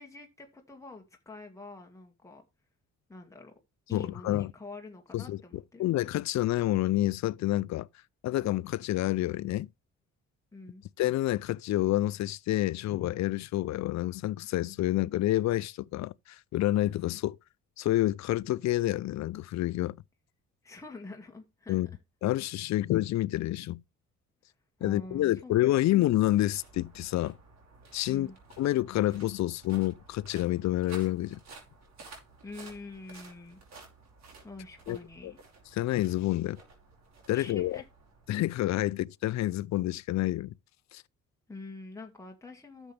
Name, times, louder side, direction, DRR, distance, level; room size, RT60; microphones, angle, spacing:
voice 1, 0.0-2.4 3.1-3.5 3.9-5.9 10.5-10.8 20.6-21.8 24.8-25.8 28.1-28.4 32.4-33.6 34.4-35.4 37.3-37.8 41.5-42.9, left 2 dB, 10° left, 2.0 m, -46 dB
voice 2, 3.9-4.5 5.1-5.4 5.8-7.9 8.2-9.7 11.0-17.4 17.8-20.0 21.7-21.9 22.2-23.8 24.8-27.3 27.9-28.3 28.6-31.4 34.9-35.0 35.2-35.3 35.7-36.6 37.3-37.8 38.3-40.5 40.9-41.0, left 15 dB, 65° left, 0.5 m, -28 dB
sound 1, 25.7-39.0, right 4 dB, 60° right, 5.3 m, -54 dB
12.0 x 7.2 x 3.3 m
cardioid pair, 90°, 30 cm